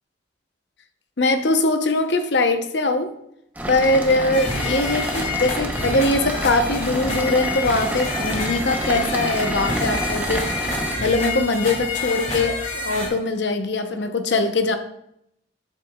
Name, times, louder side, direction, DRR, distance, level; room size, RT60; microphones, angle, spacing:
voice 1, 1.2-3.1 3.7-10.6 11.0-14.8, left 2 dB, 65° left, 7 dB, 0.8 m, -21 dB
sound 1, 3.6-11.0, right 1 dB, 10° right, 0.7 m, -28 dB
sound 2, 4.3-13.1, left 3 dB, 40° left, 2.0 m, -28 dB
7.8 x 7.5 x 2.3 m, 0.76 s
head